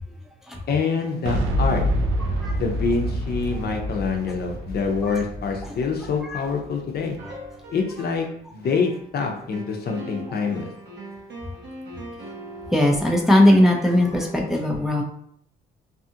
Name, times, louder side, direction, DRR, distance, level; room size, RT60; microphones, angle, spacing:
voice 1, 0.7-1.8 2.6-7.2 7.7-10.7, left 5 dB, 55° left, 2 dB, 0.6 m, -26 dB
Boom, 1.3-7.1, equal, 80° right, 0.5 m, -27 dB
sound 1, 7.2-8.3 8.6-14.5, right 1 dB, 60° right, 0.9 m, -40 dB
voice 2, 12.7-15.0, left 1 dB, ahead, -1 dB, 0.5 m, -19 dB
2.7 x 2.4 x 2.7 m, 0.66 s
cardioid pair, 90°, 20 cm